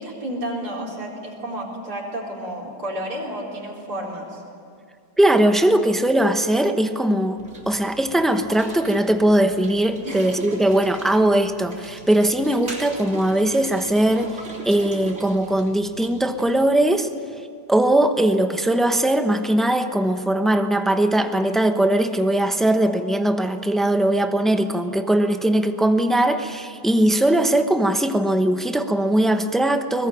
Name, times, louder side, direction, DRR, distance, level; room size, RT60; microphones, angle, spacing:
voice 1, 0.0-4.4 10.0-10.2, right 1 dB, 55° right, -4 dB, 4.8 m, -31 dB
voice 2, 5.2-7.4 7.7-14.4 14.6-17.1 17.7-30.1, right 1 dB, ahead, 7 dB, 0.6 m, -20 dB
sound 1, 7.4-16.6, right 1 dB, 40° right, 3.7 m, -40 dB
22.5 x 20.5 x 10.0 m, 2.3 s
omnidirectional pair, 2.0 m